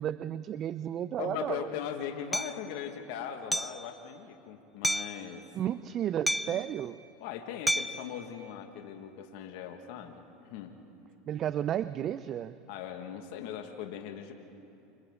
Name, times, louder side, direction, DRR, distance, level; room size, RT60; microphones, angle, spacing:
voice 1, 0.0-1.7 5.5-7.0 11.3-12.6, right 10 dB, 45° right, 14 dB, 0.5 m, -33 dB
voice 2, 1.2-5.4 6.5-6.6 7.2-10.8 12.7-14.3, left 9 dB, 70° left, 4 dB, 1.7 m, -39 dB
Hammer, 2.3-2.5 3.5-3.8 4.8-5.2 6.3-6.7 7.7-8.1, equal, ahead, 0.6 m, -30 dB
29.5 x 26.5 x 3.8 m, 2.8 s
hypercardioid pair, 95°, 0 cm